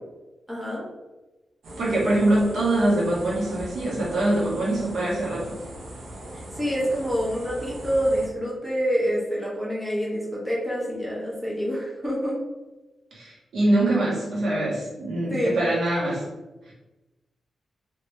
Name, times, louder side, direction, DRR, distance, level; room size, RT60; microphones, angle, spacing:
voice 1, 0.5-0.8 6.3-12.4 15.3-15.6, equal, 5° right, -6 dB, 1.1 m, -27 dB
sound 1, 1.6-8.3, right 1 dB, 85° right, 0.9 m, -40 dB
voice 2, 1.8-5.6 13.1-16.2 16.7-16.8, right 1 dB, 70° right, -6 dB, 1.4 m, -24 dB
3.3 x 2.9 x 3.2 m, 1.1 s
wide cardioid pair, 140°, 0 cm